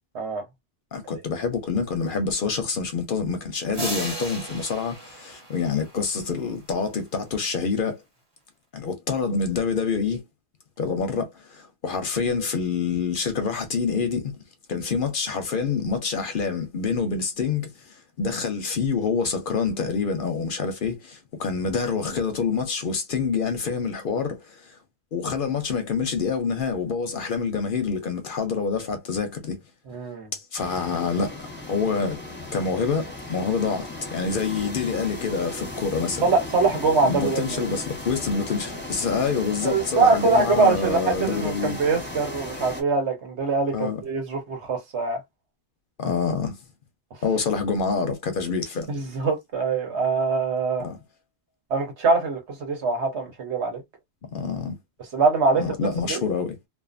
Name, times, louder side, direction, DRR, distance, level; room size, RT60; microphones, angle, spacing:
voice 1, 0.9-8.0 8.7-10.2 10.8-14.3 14.7-24.8 25.1-29.6 30.3-31.4 31.7-32.2 32.5-36.2 37.0-41.8 43.7-44.0 46.0-46.6 47.2-48.9 50.8-51.0 54.3-54.8 55.6-56.6, left 5 dB, 60° left, 0.7 m, -27 dB
sound 1, 3.7-6.2, right 2 dB, 30° right, 1.1 m, -35 dB
voice 2, 29.9-30.3 36.2-37.7 39.6-45.2 48.9-50.9 51.7-53.8 55.1-55.6 56.1-56.2, right 4 dB, 75° right, 1.3 m, -23 dB
sound 2, 30.6-42.8, left 2 dB, 10° left, 0.8 m, -36 dB
2.5 x 2.4 x 2.4 m
omnidirectional pair, 1.2 m